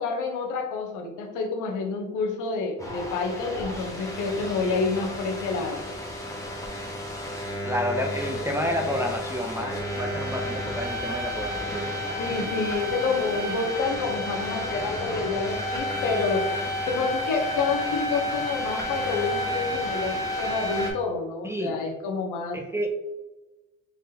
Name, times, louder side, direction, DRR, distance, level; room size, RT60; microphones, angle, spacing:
voice 1, 0.0-5.8 12.2-16.5 16.9-22.6, left 4 dB, 90° left, 2 dB, 0.8 m, -28 dB
sound 1, 2.8-20.9, left 1 dB, 10° left, 1.0 m, -31 dB
voice 2, 7.6-11.9 21.4-21.8 22.5-22.9, equal, 10° right, 2 dB, 0.4 m, -30 dB
3.9 x 3.4 x 2.8 m, 1.1 s
cardioid pair, 90°, 30 cm